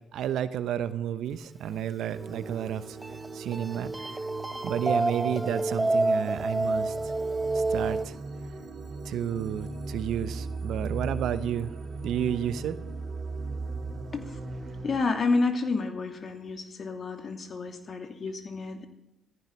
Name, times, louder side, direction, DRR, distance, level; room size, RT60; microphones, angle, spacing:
voice 1, 0.1-3.0 3.3-4.1 4.6-6.9 7.5-8.1 9.0-11.7 12.0-12.8, right 10 dB, 75° right, 13 dB, 0.9 m, -31 dB
sound 1, 1.8-8.0, right 2 dB, 20° right, 0.8 m, -29 dB
sound 2, 2.1-15.0, right 3 dB, 55° right, 3.7 m, -38 dB
voice 2, 14.8-18.9, left 3 dB, 50° left, 5 dB, 2.6 m, -30 dB
15.5 x 15.0 x 5.3 m, 0.92 s
hypercardioid pair, 45°, 0 cm